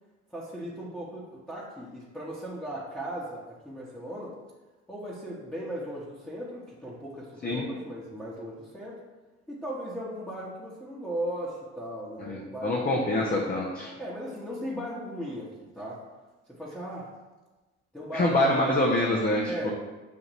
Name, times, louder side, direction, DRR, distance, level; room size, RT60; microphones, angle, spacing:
voice 1, 0.3-4.4 4.9-9.0 9.5-13.0 14.0-16.0 16.5-17.1 17.9-18.3 19.4-19.7, equal, 5° left, -8 dB, 1.1 m, -37 dB
voice 2, 12.3-13.9 18.1-19.7, left 1 dB, 25° left, -1 dB, 0.7 m, -25 dB
6.8 x 2.5 x 3.0 m, 1.2 s
hypercardioid pair, 60°, 33 cm